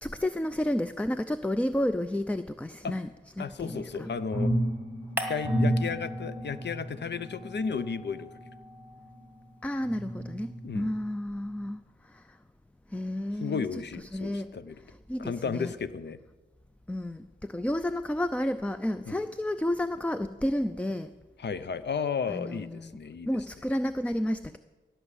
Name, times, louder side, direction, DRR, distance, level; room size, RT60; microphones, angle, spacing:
voice 1, 0.0-3.1 3.4-4.1 9.6-12.4 12.9-13.6 14.0-14.5 14.8-15.7 16.9-21.1 22.3-23.0 23.3-24.6, left 1 dB, 5° left, 11 dB, 0.4 m, -31 dB
voice 2, 3.4-4.5 5.3-8.3 10.6-10.9 13.4-14.8 15.2-16.2 19.1-19.2 21.4-23.3, left 6 dB, 60° left, 13 dB, 0.7 m, -33 dB
sound 1, 3.6-9.3 9.8-11.0 11.4-11.6, equal, 25° left, 5.5 m, -32 dB
sound 2, 5.2-6.8 7.1-9.6, equal, 10° right, 1.8 m, -41 dB
16.5 x 6.1 x 8.3 m, 1.3 s
cardioid pair, 70°, 20 cm